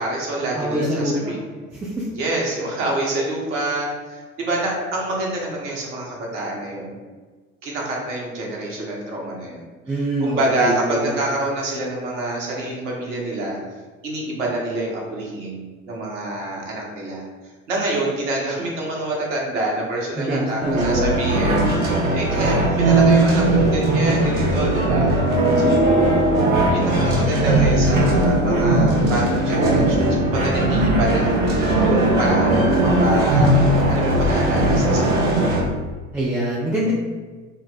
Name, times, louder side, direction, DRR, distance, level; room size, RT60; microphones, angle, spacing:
voice 1, 0.0-1.4 2.1-7.0 7.6-13.6 14.0-17.2 17.7-25.2 25.6-31.3 31.8-33.5 33.9-35.6, right 2 dB, 60° right, -3 dB, 1.2 m, -26 dB
voice 2, 0.5-1.4 1.7-2.1 9.9-11.2 20.2-20.8 36.1-36.9, right 1 dB, 5° right, -6 dB, 0.3 m, -24 dB
sound 1, 20.6-35.6, right 1 dB, 80° right, 0.9 m, -18 dB
4.0 x 2.1 x 4.0 m, 1.4 s
figure-of-eight pair, 65°, 39 cm